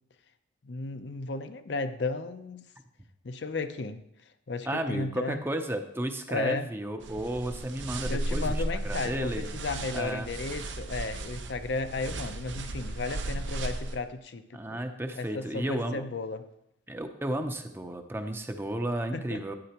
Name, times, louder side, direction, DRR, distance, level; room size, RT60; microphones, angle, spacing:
voice 1, 0.6-2.6 3.2-4.0 4.5-5.4 6.3-6.7 8.1-14.8 15.2-16.5 19.1-19.4, left 3 dB, 65° left, 9 dB, 0.6 m, -34 dB
voice 2, 4.7-9.5 9.9-10.3 14.5-16.1 16.9-19.6, right 1 dB, 10° right, 6 dB, 0.6 m, -33 dB
sound 1, 7.0-14.0, right 2 dB, 80° right, 0.8 m, -35 dB
11.5 x 9.8 x 2.9 m, 0.78 s
head